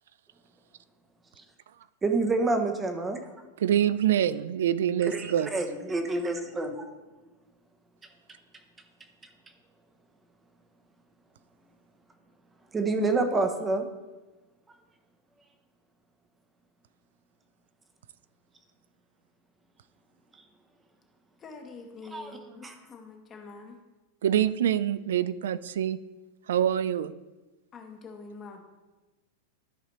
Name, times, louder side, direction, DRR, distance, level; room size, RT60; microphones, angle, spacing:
voice 1, 2.0-3.2 5.0-6.9 12.7-13.9 20.3-20.4 22.1-22.3 22.6-22.7, right 3 dB, 10° right, 6 dB, 0.7 m, -28 dB
voice 2, 3.6-5.5 24.2-26.0 26.5-27.1, right 10 dB, 80° right, 16 dB, 0.3 m, -25 dB
voice 3, 21.4-23.8 27.7-28.6, left 4 dB, 20° left, 3 dB, 1.0 m, -45 dB
13.0 x 4.9 x 3.0 m, 1.1 s
supercardioid pair, 165°, 0 cm